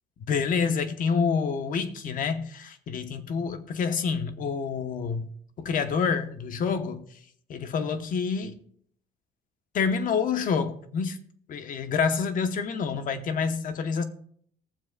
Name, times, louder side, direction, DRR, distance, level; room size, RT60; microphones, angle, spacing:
voice 1, 0.3-5.3 5.6-7.0 7.5-8.5 9.7-11.2 11.5-14.0, left 5 dB, 55° left, 0.9 m, -27 dB
18.5 x 7.2 x 2.3 m
cardioid pair, 110°, 17 cm